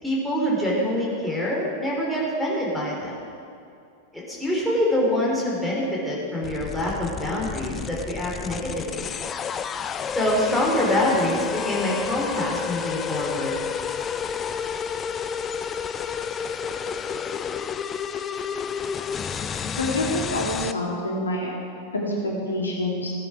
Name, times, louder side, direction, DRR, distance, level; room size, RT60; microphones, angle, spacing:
voice 1, 0.0-3.2 4.1-9.1 10.1-13.5, left 1 dB, 5° left, -5 dB, 3.4 m, -25 dB
sound 1, 6.4-20.7, left 7 dB, 25° left, 0.5 m, -30 dB
voice 2, 19.8-21.6 21.9-23.1, left 1 dB, 75° left, -3 dB, 2.2 m, -27 dB
15.5 x 9.1 x 4.9 m, 2.5 s
figure-of-eight pair, 90°, 0 cm